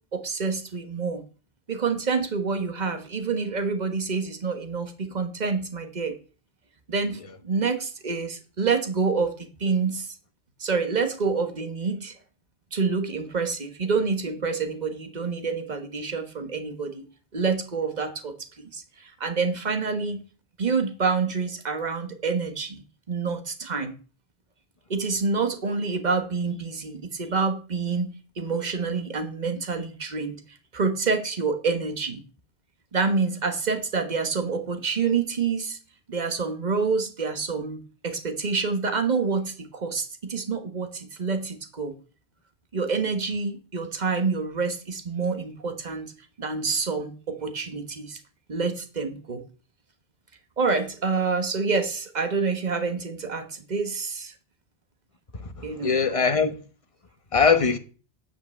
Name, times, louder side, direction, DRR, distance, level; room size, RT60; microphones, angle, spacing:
voice 1, 0.1-1.2 1.7-6.2 6.9-10.1 10.6-12.1 12.7-17.0 17.3-20.2 20.6-22.8 23.1-23.9 24.9-28.1 28.4-30.4 30.7-32.2 32.9-35.8 36.1-41.9 42.7-46.1 46.4-48.2 48.5-49.4 50.6-54.3 55.6-55.9, right 4 dB, 45° right, 1.5 m, -27 dB
voice 2, 55.4-56.6 57.3-57.8, left 5 dB, 30° left, 1.2 m, -22 dB
10.0 x 5.8 x 7.1 m
omnidirectional pair, 1.1 m